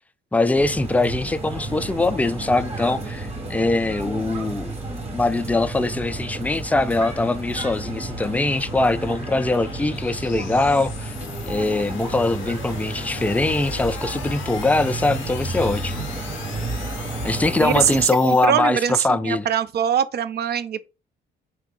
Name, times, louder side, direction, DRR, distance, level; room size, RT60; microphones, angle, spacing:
voice 1, 0.3-4.7 5.1-11.1 11.5-16.0 17.2-19.5, left 2 dB, 5° left, 0.3 m, -22 dB
sound 1, 0.5-18.1, right 2 dB, 30° right, 1.5 m, -32 dB
sound 2, 4.7-18.5, left 12 dB, 75° left, 0.4 m, -41 dB
voice 2, 17.6-20.9, right 9 dB, 55° right, 0.5 m, -22 dB
4.1 x 2.8 x 3.7 m
cardioid pair, 90°, 20 cm